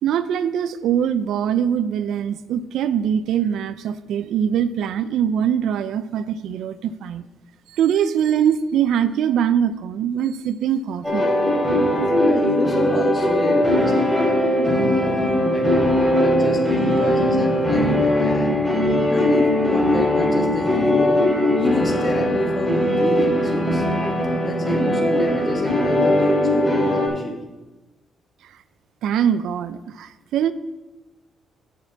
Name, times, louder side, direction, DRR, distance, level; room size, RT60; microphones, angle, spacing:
voice 1, 0.0-7.3 7.7-11.3 29.0-30.5, right 9 dB, 80° right, 14 dB, 0.4 m, -22 dB
sound 1, 11.0-27.1, left 1 dB, ahead, 3.6 m, -20 dB
voice 2, 12.1-14.1 14.6-15.8 16.2-18.6 19.1-21.2 21.6-23.9 24.4-26.2 26.5-27.4, left 2 dB, 30° left, 2 dB, 1.9 m, -28 dB
7.2 x 5.4 x 7.3 m, 1.1 s
cardioid pair, 90°, 0 cm